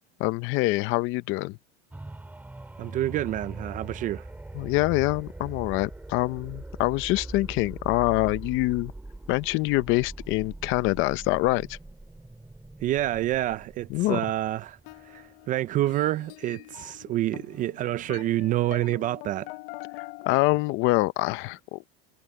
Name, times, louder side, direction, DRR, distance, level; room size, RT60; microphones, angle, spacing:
voice 1, 0.2-1.6 4.5-8.9 9.3-11.8 13.9-14.2 20.2-21.8, left 20 dB, 40° left, 0.6 m, -25 dB
sound 1, 1.9-15.6 16.1-16.2, right 2 dB, 5° right, 3.1 m, -42 dB
voice 2, 2.8-4.2 12.8-14.8 15.0-19.5, right 14 dB, 25° right, 0.4 m, -28 dB
sound 2, 14.8-20.4, left 22 dB, 65° left, 1.1 m, -44 dB
supercardioid pair, 150°, 31 cm